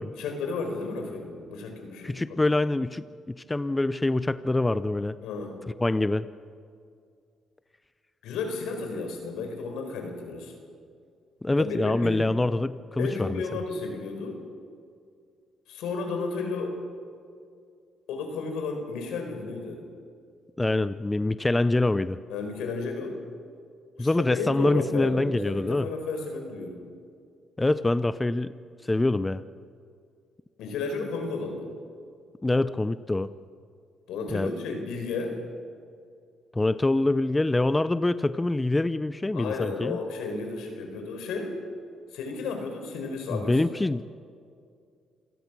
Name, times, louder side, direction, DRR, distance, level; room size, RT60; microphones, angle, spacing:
voice 1, 0.1-2.2 5.2-5.6 8.2-10.5 11.6-12.4 13.0-14.4 15.7-16.7 18.1-19.8 22.3-23.2 24.0-26.8 30.6-31.7 34.1-35.4 39.3-41.6 42.1-43.6, left 4 dB, 90° left, 4 dB, 4.4 m, -33 dB
voice 2, 2.0-5.2 5.8-6.3 11.4-13.4 20.6-22.2 24.0-25.9 27.6-28.5 28.8-29.4 32.4-33.3 34.3-34.5 36.5-40.0 43.3-44.0, left 2 dB, 15° left, 14 dB, 0.6 m, -25 dB
27.5 x 17.5 x 6.2 m, 2.3 s
cardioid pair, 90°, 0 cm